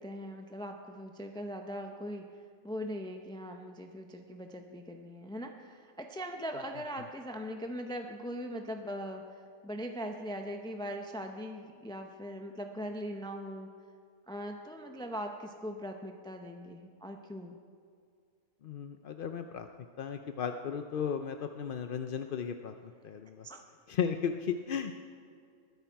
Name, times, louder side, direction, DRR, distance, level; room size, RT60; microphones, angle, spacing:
voice 1, 0.0-2.3 2.6-13.7 14.3-17.6 23.4-23.6, equal, 5° left, 4 dB, 0.3 m, -40 dB
voice 2, 18.6-19.7 20.0-23.5 23.9-25.0, left 7 dB, 60° left, 7 dB, 0.5 m, -35 dB
20.5 x 10.0 x 4.6 m, 2.3 s
omnidirectional pair, 1.5 m